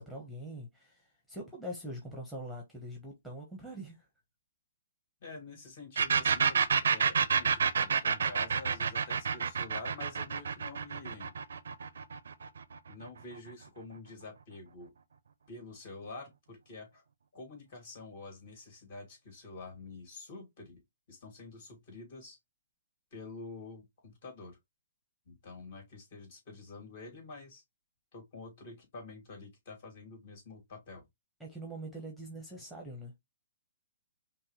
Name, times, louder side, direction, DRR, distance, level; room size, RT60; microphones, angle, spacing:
voice 1, 0.0-4.1 31.4-33.1, right 1 dB, ahead, 1.0 m, -43 dB
voice 2, 5.2-11.3 12.9-14.9 15.5-17.0 17.3-20.8 21.1-22.4 23.1-24.6 25.3-27.6 28.1-31.0, left 3 dB, 45° left, 2.7 m, -48 dB
sound 1, 6.0-13.5, right 6 dB, 70° right, 0.5 m, -29 dB
5.4 x 2.3 x 3.0 m
hypercardioid pair, 150°, 0 cm